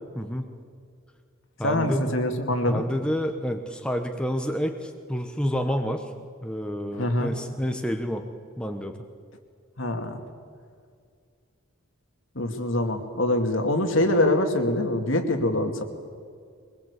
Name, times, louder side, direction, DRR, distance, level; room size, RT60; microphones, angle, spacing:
voice 1, 0.1-0.5 1.6-2.0 2.7-6.1 6.4-8.3 8.6-9.0, equal, 5° left, 5 dB, 1.1 m, -29 dB
voice 2, 1.6-2.8 6.9-7.3 9.8-10.2 12.4-15.8, left 1 dB, 65° left, 5 dB, 2.4 m, -24 dB
23.5 x 20.5 x 8.4 m, 2.1 s
head